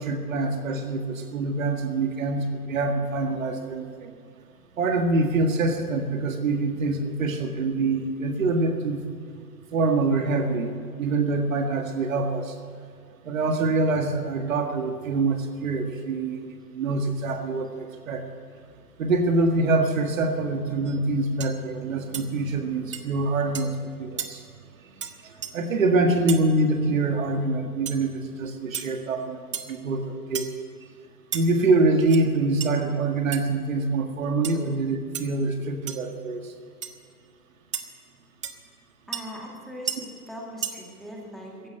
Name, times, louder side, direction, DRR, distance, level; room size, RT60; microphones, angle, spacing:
voice 1, 0.0-4.1 4.8-9.0 9.7-10.7 11.0-12.5 13.2-18.2 19.0-24.4 25.5-29.4 29.7-30.5 31.3-36.5, right 3 dB, 55° right, 5 dB, 1.9 m, -25 dB
sound 1, 20.9-21.0 21.4-21.6 22.1-22.3 22.9-23.0 23.5-23.7 24.2-24.3 25.0-25.1 25.4-25.5 26.3-26.4 27.9-28.0 28.7-28.9 29.5-29.8 30.4-30.6 31.3-31.4 32.0-32.2 32.6-32.7 33.3-33.4 34.4-34.6 35.1-35.3 35.9-36.0 36.8-36.9 37.7-37.9 38.4-38.5 39.1-39.2 39.9-40.0 40.6-40.7, right 8 dB, 20° right, 0.4 m, -32 dB
voice 2, 39.1-41.7, equal, ahead, -3 dB, 2.1 m, -40 dB
15.5 x 11.0 x 7.9 m, 2.2 s
hypercardioid pair, 130°, 47 cm